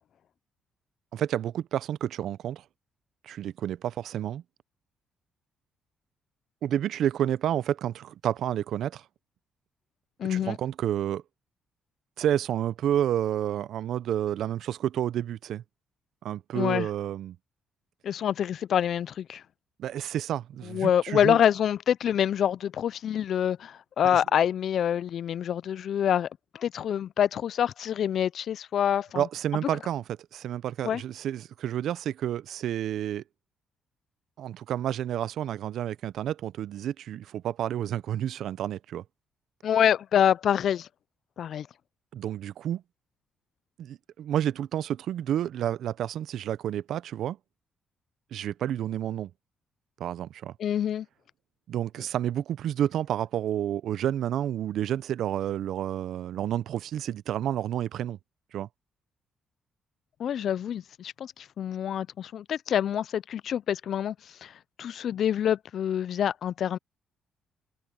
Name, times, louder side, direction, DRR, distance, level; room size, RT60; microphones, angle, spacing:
voice 1, 1.1-2.6 3.2-4.4 6.6-9.0 10.3-11.2 12.2-15.6 16.2-17.4 19.8-21.4 24.1-24.2 29.1-30.0 30.3-33.2 34.4-39.0 42.1-42.8 43.8-47.4 48.3-49.3 50.0-50.5 51.7-58.2 58.5-58.7, right 11 dB, 75° right, 0.5 m, -30 dB
voice 2, 10.2-10.6 16.5-16.9 18.0-19.4 20.6-26.3 26.5-29.3 30.8-31.0 39.6-40.9 41.4-41.7 50.6-51.1 60.2-64.2 64.4-66.8, left 9 dB, 65° left, 0.4 m, -26 dB
cardioid pair, 90°, 0 cm